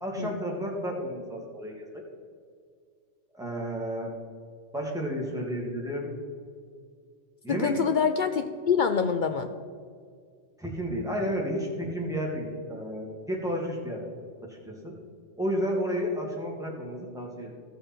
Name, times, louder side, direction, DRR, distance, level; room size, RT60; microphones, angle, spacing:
voice 1, 0.0-1.9 3.3-4.1 4.7-6.1 7.4-7.8 10.6-14.0 14.5-14.9 15.4-17.5, equal, 5° right, -2 dB, 1.9 m, -32 dB
voice 2, 7.5-9.5, left 6 dB, 60° left, 8 dB, 0.5 m, -26 dB
14.5 x 6.8 x 4.4 m, 2.1 s
omnidirectional pair, 1.2 m